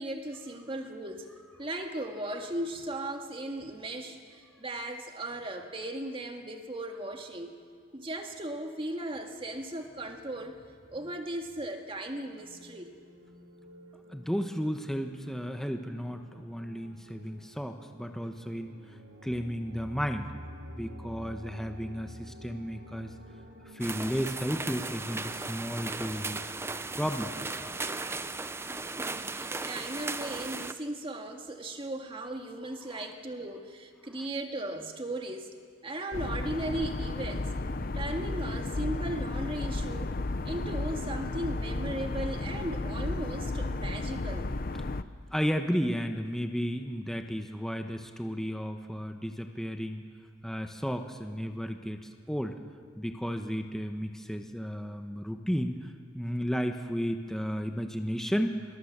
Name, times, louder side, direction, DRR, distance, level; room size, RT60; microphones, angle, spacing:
voice 1, 0.0-7.5 7.9-10.6 10.9-12.9 28.9-35.5 35.8-37.5 37.9-40.1 40.5-44.5, right 1 dB, 30° right, 4 dB, 1.9 m, -37 dB
sound 1, 12.3-28.3, equal, 80° right, 2.6 m, -50 dB
voice 2, 14.1-18.7 19.2-20.3 20.7-23.1 23.7-26.5 27.0-27.5 32.9-33.0 45.3-50.0 50.4-52.6 53.0-58.6, equal, ahead, 5 dB, 1.0 m, -33 dB
sound 2, 23.8-30.7, right 3 dB, 15° right, 0.5 m, -36 dB
sound 3, 36.1-45.0, left 2 dB, 50° left, 0.7 m, -33 dB
24.5 x 21.5 x 7.4 m, 2.1 s
head